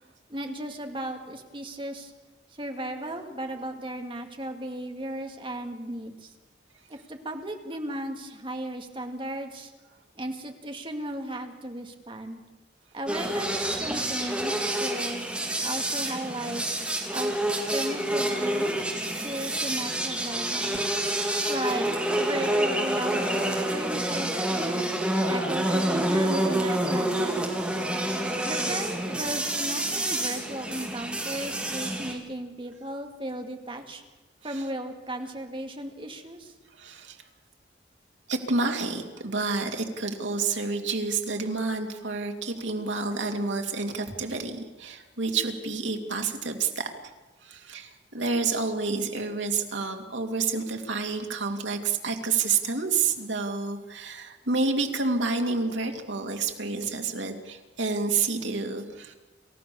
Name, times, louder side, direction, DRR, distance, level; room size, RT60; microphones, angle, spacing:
voice 1, 0.3-2.1 2.5-6.3 6.9-9.7 10.2-12.4 12.9-15.3 15.6-16.6 17.1-17.3 17.7-20.8 21.5-21.9 22.1-24.9 25.2-27.9 28.5-34.0 34.4-36.5, right 1 dB, 30° right, 5 dB, 2.1 m, -35 dB
sound 1, 13.1-32.1, right 1 dB, 5° right, 3.2 m, -28 dB
voice 2, 36.7-37.2 38.3-46.9 47.4-59.1, right 4 dB, 85° right, 4 dB, 2.6 m, -29 dB
28.5 x 15.0 x 7.0 m, 1.2 s
head